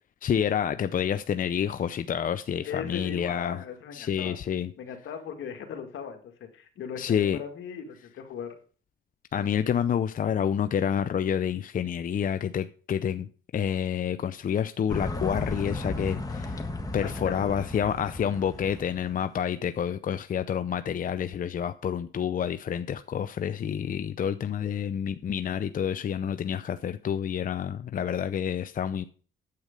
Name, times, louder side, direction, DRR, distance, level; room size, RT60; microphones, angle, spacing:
voice 1, 0.2-3.6 3.9-4.7 7.0-7.4 9.3-16.6 16.9-29.0, left 8 dB, 45° left, 0.6 m, -28 dB
voice 2, 2.6-4.4 4.8-8.6 17.0-17.6, left 7 dB, 75° left, 2.0 m, -38 dB
sound 1, 14.9-19.2, left 2 dB, 20° left, 1.4 m, -35 dB
9.5 x 8.2 x 5.3 m
cardioid pair, 90°, 20 cm